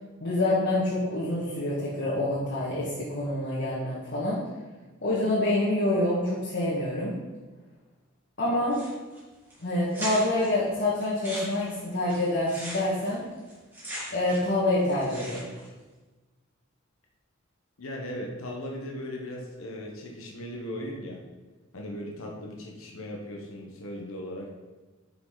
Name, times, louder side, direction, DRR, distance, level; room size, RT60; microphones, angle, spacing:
voice 1, 0.2-4.4 5.0-7.1 8.4-8.8 9.6-13.2 14.1-15.5, left 1 dB, 55° left, -7 dB, 1.9 m, -26 dB
sound 1, 8.7-9.2 9.5-9.6 9.9-10.5 11.0-14.6 14.8-15.7, equal, 10° right, 3.0 m, -39 dB
voice 2, 17.8-21.2 21.7-24.5, left 1 dB, 85° left, -1 dB, 1.2 m, -38 dB
10.0 x 5.7 x 4.0 m, 1.2 s
head